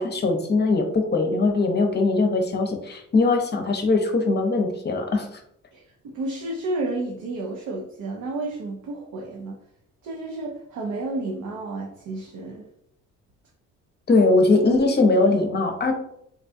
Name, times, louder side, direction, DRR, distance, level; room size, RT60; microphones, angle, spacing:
voice 1, 0.0-5.3 14.1-15.9, left 3 dB, 35° left, 4 dB, 0.7 m, -21 dB
voice 2, 5.7-9.6 10.0-12.7, right 2 dB, 75° right, 0 dB, 0.6 m, -31 dB
4.0 x 2.3 x 2.6 m, 0.75 s
cardioid pair, 90°, 30 cm